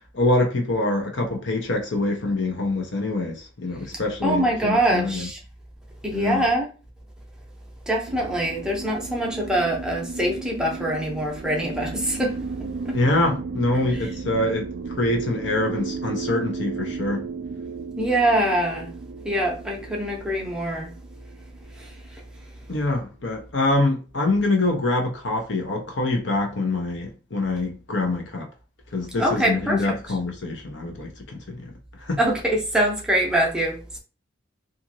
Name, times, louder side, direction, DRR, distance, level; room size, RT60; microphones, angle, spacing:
voice 1, 0.1-5.3 6.1-6.4 12.9-14.7 15.0-17.2 22.7-28.5 28.9-31.6 32.0-32.2, left 2 dB, 75° left, 0.7 m, -25 dB
voice 2, 4.2-5.4 6.0-6.7 7.9-13.0 18.0-18.9 19.2-20.9 21.8-21.9 29.2-29.8 32.2-34.0, right 1 dB, 5° right, 0.6 m, -24 dB
sound 1, 8.1-22.6, right 4 dB, 55° right, 0.3 m, -34 dB
2.8 x 2.5 x 2.6 m
head